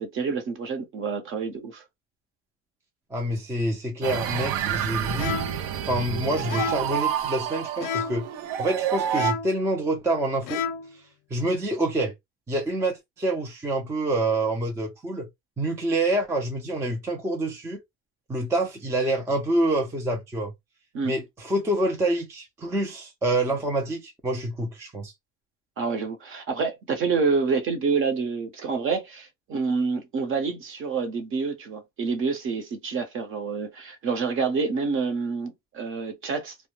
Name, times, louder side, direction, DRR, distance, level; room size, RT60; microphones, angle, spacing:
voice 1, 0.0-1.8 20.9-21.1 25.8-36.6, right 4 dB, 40° right, 0.8 m, -27 dB
voice 2, 3.1-5.3 5.8-8.3 8.6-10.6 11.3-12.1 12.5-15.3 15.6-17.8 18.3-20.5 21.0-25.1, right 1 dB, 10° right, 0.4 m, -27 dB
sound 1, 4.0-9.3, right 10 dB, 90° right, 0.5 m, -28 dB
sound 2, 5.2-5.7 6.5-7.0 7.8-8.3 9.1-9.6 10.4-11.0, left 7 dB, 70° left, 0.5 m, -31 dB
2.1 x 2.1 x 2.9 m
cardioid pair, 140°, 33 cm